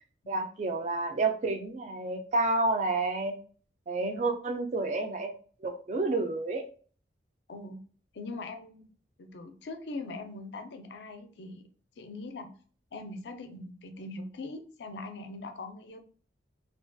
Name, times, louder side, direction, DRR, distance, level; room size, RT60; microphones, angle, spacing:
voice 1, 0.3-3.4 3.9-5.3 5.6-6.6, right 2 dB, 40° right, 6 dB, 0.3 m, -29 dB
voice 2, 7.5-7.8 8.1-8.9 9.2-11.6 12.0-12.5 12.9-16.0, left 2 dB, 65° left, 7 dB, 0.4 m, -41 dB
2.3 x 2.2 x 2.5 m, 0.42 s
head